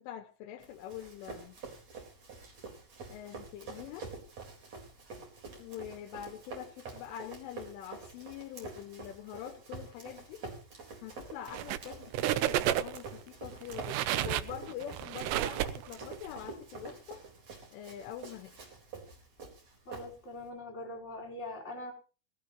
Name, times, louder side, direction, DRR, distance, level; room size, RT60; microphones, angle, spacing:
voice 1, 0.0-1.6 3.1-4.1 5.6-10.4 11.0-17.2 17.7-18.6, left 10 dB, 80° left, 9 dB, 3.4 m, -45 dB
Run, 0.6-20.5, right 4 dB, 35° right, 4.9 m, -47 dB
sound 1, 11.5-11.9 12.1-13.1 13.6-16.3, right 13 dB, 80° right, 2.5 m, -31 dB
voice 2, 19.8-21.9, left 1 dB, 15° left, -3 dB, 4.3 m, -42 dB
21.0 x 16.5 x 3.1 m, 0.36 s
omnidirectional pair, 5.8 m